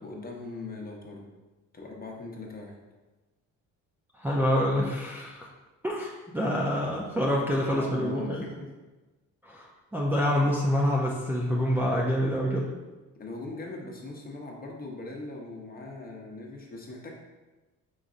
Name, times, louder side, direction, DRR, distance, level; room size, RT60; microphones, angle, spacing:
voice 1, 0.0-1.2 1.7-2.8 7.5-8.5 13.2-17.1, left 2 dB, 30° left, -1 dB, 0.9 m, -40 dB
voice 2, 4.1-5.5 5.8-8.5 9.4-12.7, equal, 5° right, -5 dB, 0.4 m, -27 dB
5.0 x 4.0 x 2.5 m, 1.2 s
cardioid pair, 120°, 31 cm